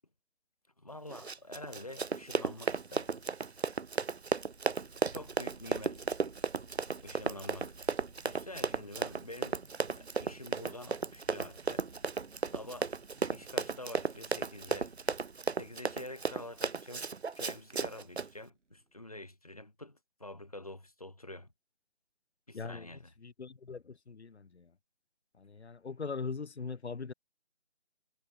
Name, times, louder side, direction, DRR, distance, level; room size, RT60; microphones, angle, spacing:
voice 1, 0.8-3.2 5.1-6.1 7.0-7.7 8.2-11.8 12.5-12.9 13.3-14.9 15.6-21.5 22.5-23.1, left 1 dB, 30° left, 1.2 m, -47 dB
Run, 1.1-18.3, right 5 dB, 60° right, 0.7 m, -34 dB
sound 1, 3.4-19.2, right 3 dB, 80° right, 2.6 m, -59 dB
voice 2, 22.5-22.9 23.2-24.7 25.4-27.1, left 5 dB, 65° left, 0.9 m, -41 dB
figure-of-eight pair, 180°, 36 cm